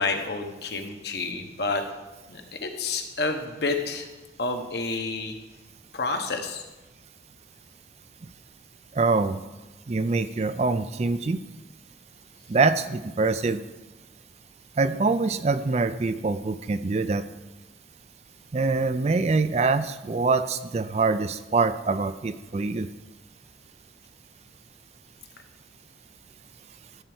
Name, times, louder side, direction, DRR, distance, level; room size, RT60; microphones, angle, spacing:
voice 1, 0.0-1.8 2.3-4.1 4.4-5.3 5.9-6.6, left 3 dB, 60° left, 5 dB, 1.2 m, -29 dB
voice 2, 8.9-9.4 9.9-11.4 12.5-13.6 14.8-17.2 18.5-22.9, right 3 dB, 35° right, 12 dB, 0.4 m, -24 dB
13.0 x 4.6 x 7.8 m, 1.1 s
head